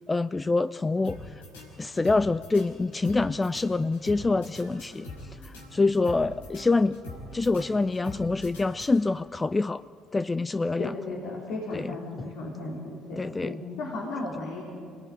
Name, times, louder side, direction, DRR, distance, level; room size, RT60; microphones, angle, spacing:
voice 1, 0.1-1.3 1.8-5.1 5.4-7.0 7.3-9.8 10.1-10.9 11.7-12.3 13.2-13.6, left 3 dB, 20° left, 15 dB, 0.5 m, -26 dB
sound 1, 1.0-9.4, left 2 dB, 85° left, 5.0 m, -44 dB
voice 2, 10.8-14.6, left 2 dB, 70° left, -3 dB, 4.0 m, -35 dB
26.5 x 18.5 x 9.5 m, 2.4 s
hypercardioid pair, 55°, 0 cm